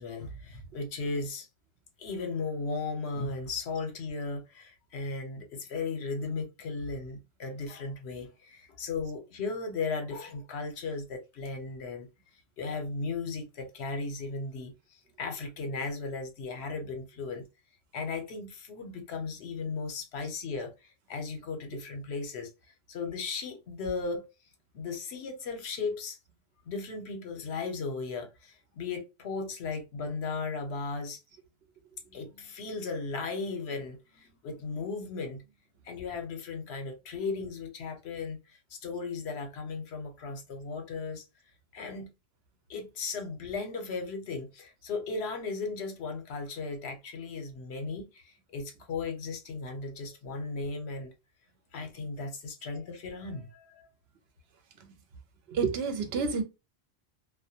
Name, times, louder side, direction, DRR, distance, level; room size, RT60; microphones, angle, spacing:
voice 1, 0.0-1.5 2.0-12.1 12.6-17.4 17.9-22.5 22.9-24.3 24.7-26.2 26.7-31.2 32.1-35.5 35.8-41.2 41.7-42.1 42.7-51.1 51.7-53.9, left 4 dB, 75° left, 0.9 m, -36 dB
voice 2, 55.5-56.4, right 5 dB, 70° right, 0.8 m, -30 dB
2.2 x 2.1 x 2.7 m
omnidirectional pair, 1.1 m